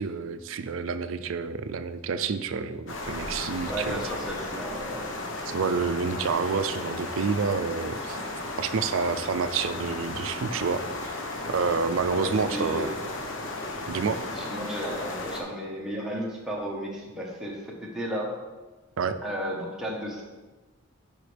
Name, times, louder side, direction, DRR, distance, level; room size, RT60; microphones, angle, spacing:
voice 1, 0.0-4.0 5.5-8.2 8.6-11.1 11.5-12.9 13.9-14.2 19.0-19.2, right 5 dB, 75° right, 11 dB, 0.4 m, -28 dB
sound 1, 2.9-15.4, left 2 dB, 65° left, 0.9 m, -35 dB
voice 2, 3.6-5.1 12.1-13.0 14.3-18.3 19.2-20.2, equal, 5° right, -3 dB, 1.2 m, -33 dB
9.0 x 5.3 x 3.3 m, 1.2 s
head